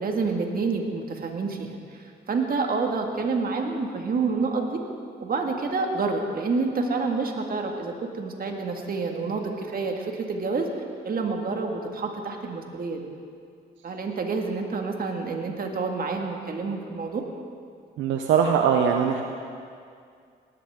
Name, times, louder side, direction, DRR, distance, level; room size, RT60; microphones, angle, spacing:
voice 1, 0.0-4.8 5.2-10.7 11.0-13.1 13.8-17.3, right 4 dB, 50° right, 2 dB, 2.0 m, -28 dB
voice 2, 18.0-19.2, right 7 dB, 85° right, 3 dB, 0.8 m, -21 dB
18.0 x 13.5 x 3.8 m, 2.3 s
supercardioid pair, 65°, 19 cm